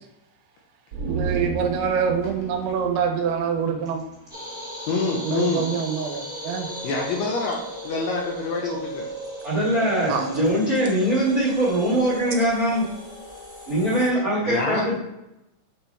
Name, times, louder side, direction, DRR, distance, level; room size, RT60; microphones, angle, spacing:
sound 1, 0.9-4.3 4.6-4.7, right 4 dB, 65° right, 1.6 m, -33 dB
voice 1, 1.1-4.0 5.2-6.7 10.1-10.3, right 7 dB, 85° right, 3.1 m, -25 dB
sound 2, 4.3-14.1, equal, 5° right, 0.3 m, -36 dB
voice 2, 4.9-5.7 6.8-9.1 14.5-14.9, left 4 dB, 75° left, 2.5 m, -26 dB
voice 3, 9.4-12.9 13.7-15.0, right 1 dB, 45° right, 1.2 m, -22 dB
8.7 x 4.4 x 3.3 m
omnidirectional pair, 5.3 m